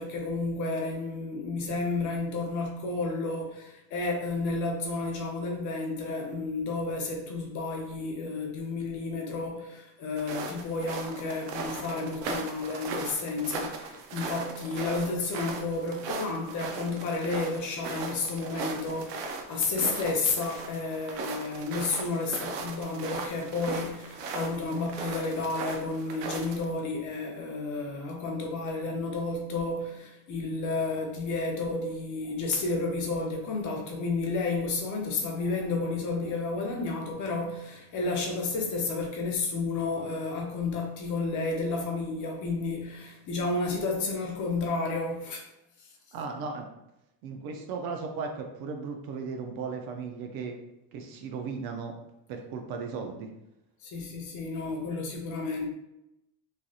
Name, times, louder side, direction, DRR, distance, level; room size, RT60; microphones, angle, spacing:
voice 1, 0.0-45.4 53.8-55.7, left 3 dB, 40° left, 1 dB, 0.6 m, -31 dB
sound 1, 10.2-26.6, right 3 dB, 90° right, 0.7 m, -38 dB
voice 2, 46.1-46.7 47.2-50.6 50.9-52.0 52.3-53.3, right 5 dB, 50° right, 4 dB, 0.5 m, -36 dB
3.2 x 2.5 x 2.3 m, 0.87 s
cardioid pair, 150°, 47 cm